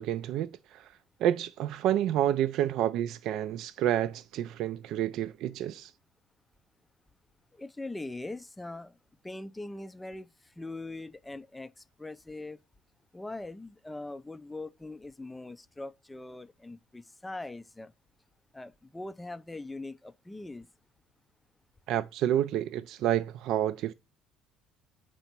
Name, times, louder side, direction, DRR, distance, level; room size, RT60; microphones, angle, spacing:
voice 1, 0.0-5.9 21.9-23.9, right 11 dB, 60° right, 0.4 m, -29 dB
voice 2, 7.5-8.9 9.2-10.3 10.6-12.6 13.1-17.9 18.5-20.7, left 2 dB, 10° left, 0.4 m, -41 dB
9.0 x 4.1 x 5.9 m
cardioid pair, 155°, 0 cm